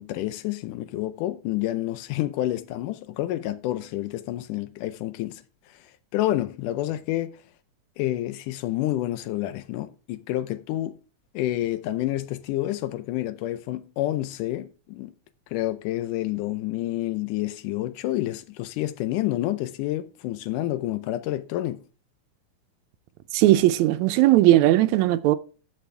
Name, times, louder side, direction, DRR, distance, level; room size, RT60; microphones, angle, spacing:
voice 1, 0.0-5.4 5.7-5.8 6.1-7.4 8.0-11.0 11.3-15.1 15.5-21.8, left 15 dB, 85° left, 2.2 m, -29 dB
voice 2, 23.3-25.4, right 15 dB, 80° right, 1.8 m, -18 dB
14.0 x 6.1 x 3.3 m
omnidirectional pair, 3.6 m